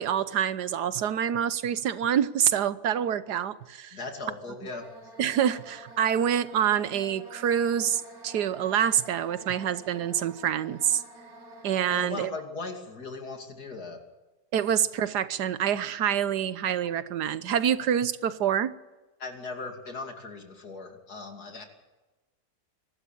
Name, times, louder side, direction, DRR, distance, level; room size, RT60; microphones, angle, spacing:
voice 1, 0.0-4.0 5.2-11.0 11.6-12.3 14.5-18.7, right 9 dB, 85° right, 1.5 m, -26 dB
voice 2, 3.9-5.1 11.9-14.0 19.2-21.6, left 3 dB, 70° left, 3.1 m, -38 dB
sound 1, 4.6-12.2, right 1 dB, 65° right, 4.0 m, -48 dB
24.0 x 12.5 x 8.7 m
omnidirectional pair, 1.7 m